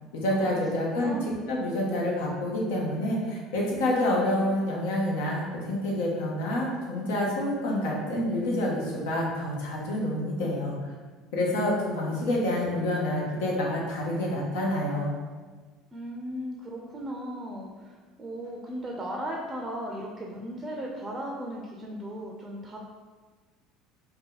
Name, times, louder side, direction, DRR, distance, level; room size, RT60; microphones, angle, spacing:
voice 1, 0.1-1.1 1.5-10.8 11.3-15.2, left 1 dB, 85° left, -3 dB, 0.8 m, -28 dB
voice 2, 15.9-22.8, equal, 20° right, -1 dB, 0.4 m, -36 dB
2.8 x 2.1 x 3.8 m, 1.4 s
supercardioid pair, 95°, 0 cm